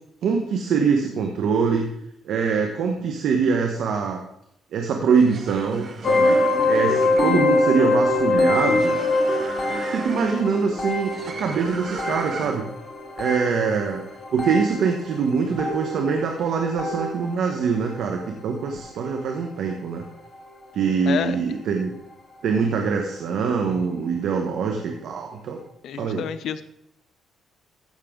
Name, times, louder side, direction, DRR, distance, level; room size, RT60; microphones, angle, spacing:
voice 1, 0.2-1.9 2.2-4.2 4.7-6.4 6.7-9.0 9.9-12.7 13.2-14.0 14.3-20.0 20.7-21.9 22.4-25.6 26.0-26.2, right 5 dB, 75° right, 3 dB, 1.2 m, -23 dB
sound 1, 5.1-12.8, right 4 dB, 50° right, 1.4 m, -38 dB
sound 2, 6.0-17.5 17.8-18.2 18.8-19.1 19.3-19.4 20.0-20.1, left 2 dB, 40° left, 2.6 m, -24 dB
voice 2, 21.1-21.4 25.8-26.6, left 8 dB, 75° left, 12 dB, 0.7 m, -29 dB
15.0 x 6.6 x 3.8 m, 0.78 s
cardioid pair, 90°, 0 cm